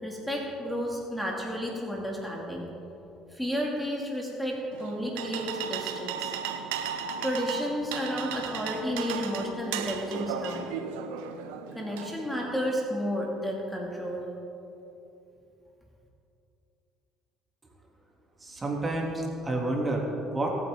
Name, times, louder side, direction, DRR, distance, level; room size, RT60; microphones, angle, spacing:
voice 1, 0.0-2.7 3.3-6.4 7.2-10.7 11.7-14.3, equal, 5° left, -2 dB, 2.7 m, -32 dB
sound 1, 4.7-12.7, right 7 dB, 80° right, 0.9 m, -36 dB
voice 2, 18.4-20.5, right 2 dB, 25° right, -1 dB, 3.1 m, -29 dB
25.0 x 9.0 x 3.9 m, 2.9 s
hypercardioid pair, 65°, 0 cm